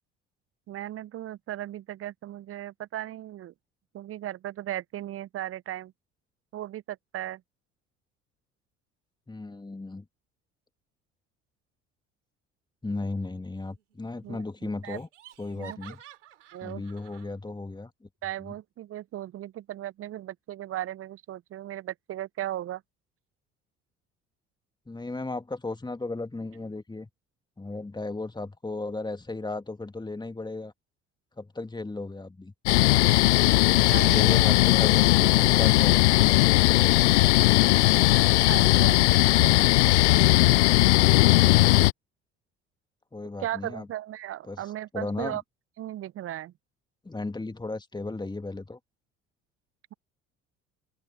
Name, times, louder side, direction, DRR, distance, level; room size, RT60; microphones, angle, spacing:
voice 1, 0.7-3.5 3.9-5.9 6.5-7.4 14.2-14.4 14.8-15.0 15.6-15.8 16.5-16.8 18.2-22.8 33.9-34.5 38.5-39.6 43.4-45.4 45.8-46.5, right 13 dB, 40° right, 0.8 m, -36 dB
voice 2, 9.3-10.1 12.8-15.1 15.4-16.0 16.6-18.1 18.4-18.5 24.9-27.1 27.6-30.7 31.4-32.5 34.0-36.2 43.1-43.9 44.4-44.6 44.9-45.4 47.0-48.8, left 2 dB, 10° left, 2.3 m, -35 dB
Laughter, 13.5-14.1 14.3-14.4 14.8-17.3, right 10 dB, 75° right, 3.6 m, -50 dB
sound 1, 32.7-41.9, left 20 dB, 70° left, 0.5 m, -19 dB
figure-of-eight pair, 55°, 36 cm